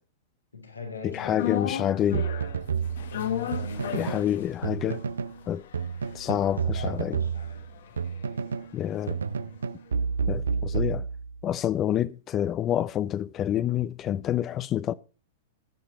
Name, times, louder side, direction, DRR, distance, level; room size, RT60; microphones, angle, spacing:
voice 1, 0.5-1.9 3.1-4.3 6.4-7.8, left 4 dB, 85° left, 2.9 m, -40 dB
voice 2, 1.0-2.3 3.9-5.0 5.5-5.6 6.1-7.2 8.7-9.2 10.3-11.0 11.4-14.9, left 11 dB, 30° left, 0.5 m, -27 dB
sound 1, 1.4-9.7 9.9-10.0, left 10 dB, 65° left, 1.5 m, -37 dB
sound 2, 2.1-4.3 4.6-5.4 5.7-8.7 9.1-11.5, right 6 dB, 80° right, 0.5 m, -30 dB
10.5 x 8.5 x 6.7 m
hypercardioid pair, 105°, 0 cm